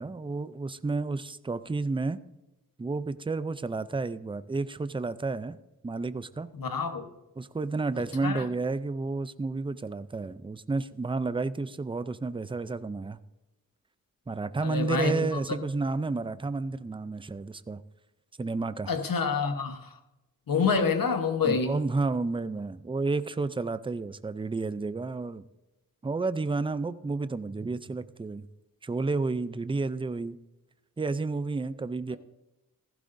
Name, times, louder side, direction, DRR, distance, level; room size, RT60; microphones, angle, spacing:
voice 1, 0.0-2.2 2.8-5.6 5.8-6.5 7.4-13.2 14.3-17.8 18.4-18.9 21.4-25.5 26.0-28.5 28.8-30.4 31.0-32.2, right 3 dB, 15° right, 0.4 m, -31 dB
voice 2, 6.5-7.0 8.2-8.4 14.6-15.1 18.9-19.9 20.5-21.7, left 5 dB, 70° left, 1.2 m, -27 dB
15.0 x 15.0 x 2.6 m
wide cardioid pair, 120°, 35 cm